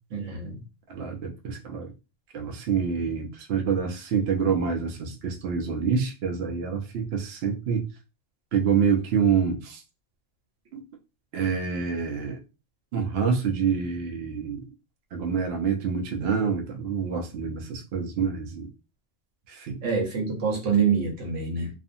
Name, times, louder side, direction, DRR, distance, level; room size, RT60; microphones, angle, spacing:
voice 1, 0.1-0.6 19.8-21.7, right 6 dB, 85° right, 1 dB, 1.3 m, -26 dB
voice 2, 0.9-1.9 2.3-7.8 8.5-9.8 10.7-10.8 11.3-12.4 12.9-14.7 15.1-18.7 19.5-19.8, right 6 dB, 65° right, 2 dB, 0.8 m, -27 dB
2.5 x 2.5 x 2.5 m, 0.29 s
omnidirectional pair, 1.2 m